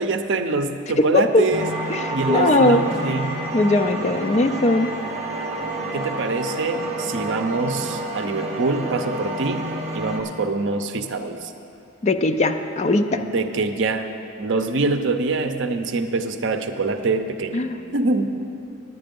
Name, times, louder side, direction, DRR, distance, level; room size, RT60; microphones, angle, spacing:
voice 1, 0.0-1.7 2.1-3.4 5.9-9.6 9.9-11.5 13.2-14.1 14.4-17.6 17.9-18.3, right 3 dB, 60° right, 7 dB, 0.6 m, -24 dB
voice 2, 1.0-1.4 1.9-2.8 3.5-4.9 12.0-13.2 17.5-17.8, left 2 dB, 30° left, 7 dB, 0.4 m, -19 dB
sound 1, 1.5-10.2, right 2 dB, 30° right, 1.1 m, -29 dB
9.5 x 9.4 x 5.3 m, 2.8 s
head